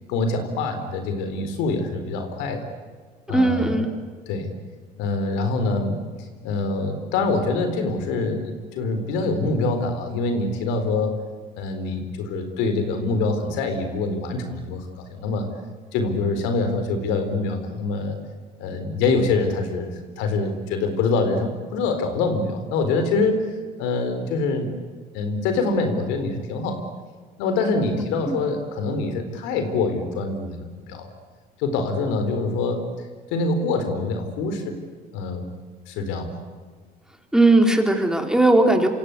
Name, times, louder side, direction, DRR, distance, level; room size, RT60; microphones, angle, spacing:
voice 1, 0.1-2.6 3.3-3.8 4.3-4.5 5.0-6.0 6.4-11.2 11.5-15.5 15.9-18.2 18.6-19.9 20.2-23.4 23.8-24.7 25.1-26.8 27.4-31.1 31.6-32.9 33.3-34.8 35.1-35.5 35.9-36.4, left 3 dB, 80° left, 8 dB, 4.2 m, -25 dB
voice 2, 3.3-3.9 28.0-28.4 37.3-38.9, right 2 dB, 5° right, 3 dB, 4.1 m, -18 dB
27.0 x 26.0 x 8.3 m, 1.5 s
supercardioid pair, 90°, 19 cm